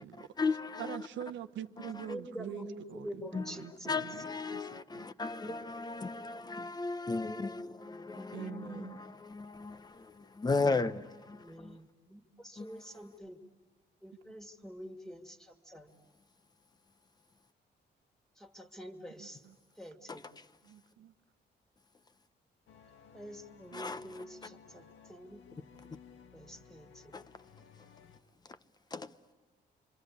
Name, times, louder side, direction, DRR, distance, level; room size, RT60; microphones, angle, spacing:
voice 1, 0.0-1.0 1.8-2.1 3.3-11.8 12.6-12.8 20.1-20.5 23.7-24.2 27.1-27.2 28.9-29.1, left 3 dB, 20° left, 0.8 m, -36 dB
voice 2, 0.8-5.1 5.4-5.6 8.3-9.0 19.2-19.6 20.6-21.1 23.7-23.8, right 11 dB, 85° right, 1.0 m, -45 dB
voice 3, 2.1-3.7 8.1-8.8 11.3-13.4 14.0-15.9 18.4-19.4 19.8-20.3 23.1-25.4 26.3-27.0, equal, 5° left, 2.2 m, -47 dB
sound 1, 22.7-28.2, left 6 dB, 80° left, 1.6 m, -58 dB
27.5 x 25.5 x 8.4 m
cardioid pair, 125°, 19 cm